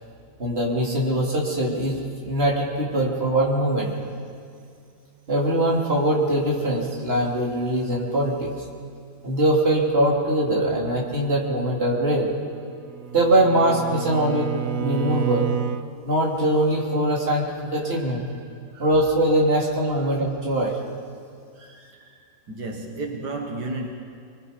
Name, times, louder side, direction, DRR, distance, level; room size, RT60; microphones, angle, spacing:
voice 1, 0.4-3.9 5.3-8.5 9.2-12.3 13.1-15.5 16.0-18.2 18.8-20.8, right 1 dB, 35° right, -3 dB, 3.5 m, -22 dB
Bowed string instrument, 12.5-15.9, right 9 dB, 60° right, 1.1 m, -29 dB
voice 2, 17.9-18.9 19.9-20.2 21.6-23.9, right 2 dB, 85° right, 2 dB, 2.3 m, -35 dB
26.5 x 22.0 x 5.3 m, 2.3 s
omnidirectional pair, 1.8 m